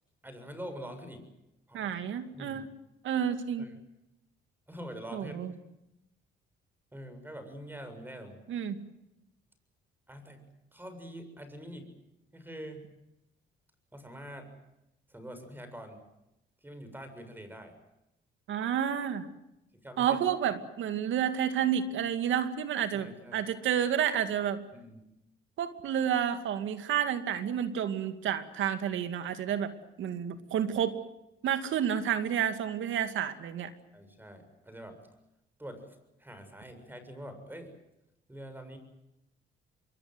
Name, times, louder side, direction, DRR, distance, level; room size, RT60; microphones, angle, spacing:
voice 1, 0.2-1.2 1.7-1.9 2.3-2.7 3.6-3.7 4.7-5.4 6.9-8.4 10.1-10.4 10.7-11.9 12.3-12.9 13.9-14.5 15.1-16.0 16.6-17.7 19.7-20.2 22.9-23.4 24.7-25.0 33.9-35.0 35.6-37.7 38.3-38.8, equal, 10° right, 8 dB, 7.2 m, -45 dB
voice 2, 1.7-2.7 3.0-3.7 5.1-5.5 8.5-8.8 18.5-19.3 20.0-24.6 25.6-29.7 30.0-31.0 31.4-33.7, right 9 dB, 75° right, 10 dB, 2.3 m, -30 dB
26.5 x 23.0 x 7.9 m, 0.89 s
cardioid pair, 90°, 20 cm